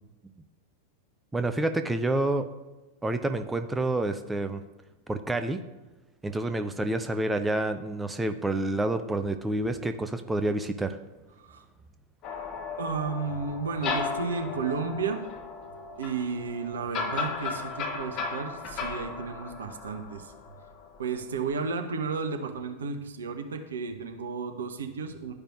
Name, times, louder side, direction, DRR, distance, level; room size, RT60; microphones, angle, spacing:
voice 1, 1.3-2.5 3.0-4.6 5.1-5.6 6.2-11.0, right 2 dB, 10° right, 8 dB, 0.4 m, -28 dB
sound 1, 12.2-21.0, left 5 dB, 40° left, 0.7 m, -36 dB
voice 2, 12.8-15.2 16.0-20.3 21.0-25.3, right 5 dB, 70° right, 6 dB, 0.7 m, -33 dB
12.0 x 4.9 x 2.4 m, 1.1 s
figure-of-eight pair, 90°, 0 cm